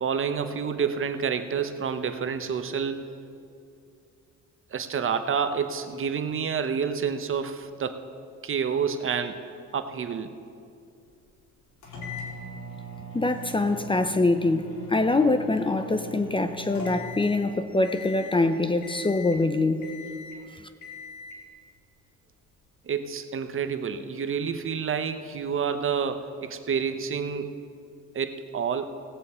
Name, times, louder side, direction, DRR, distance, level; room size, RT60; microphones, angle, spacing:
voice 1, 0.0-3.2 4.7-8.0 8.4-9.4 9.7-10.3 22.9-27.6 28.1-28.9, right 6 dB, 45° right, 9 dB, 0.8 m, -29 dB
sound 1, 11.8-17.5 17.8-18.4 18.8-19.5 19.8-20.4 20.8-21.4, equal, 80° left, 2.8 m, -41 dB
voice 2, 13.1-19.9, left 2 dB, 15° left, 9 dB, 0.6 m, -24 dB
18.0 x 8.1 x 4.3 m, 2.5 s
cardioid pair, 90°, 30 cm